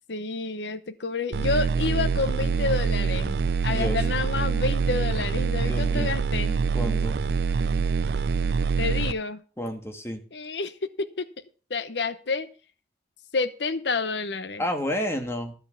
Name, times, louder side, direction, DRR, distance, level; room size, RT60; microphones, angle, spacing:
voice 1, 0.1-6.6 8.8-9.4 10.3-11.3 11.7-12.5 13.3-14.6, left 4 dB, 85° left, 12 dB, 0.9 m, -29 dB
sound 1, 1.3-9.1, right 5 dB, 75° right, 0.4 m, -25 dB
voice 2, 3.7-4.0 5.6-6.1 6.7-7.2 9.6-10.2 14.6-15.5, equal, 15° left, 4 dB, 1.4 m, -30 dB
13.0 x 5.7 x 7.1 m, 0.38 s
head